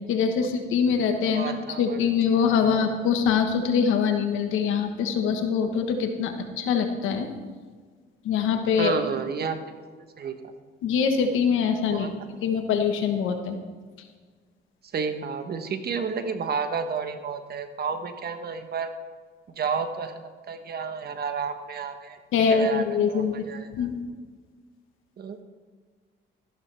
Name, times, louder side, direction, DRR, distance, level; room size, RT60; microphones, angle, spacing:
voice 1, 0.0-7.3 8.2-8.9 10.8-12.1 12.4-13.5 22.3-24.0, left 6 dB, 90° left, 6 dB, 1.3 m, -24 dB
voice 2, 1.3-2.1 2.6-2.8 8.8-9.7 10.2-10.5 11.9-12.1 14.9-18.9 19.5-23.9 25.2-25.4, right 5 dB, 55° right, 8 dB, 1.1 m, -31 dB
13.5 x 11.0 x 3.4 m, 1.5 s
cardioid pair, 90°, 20 cm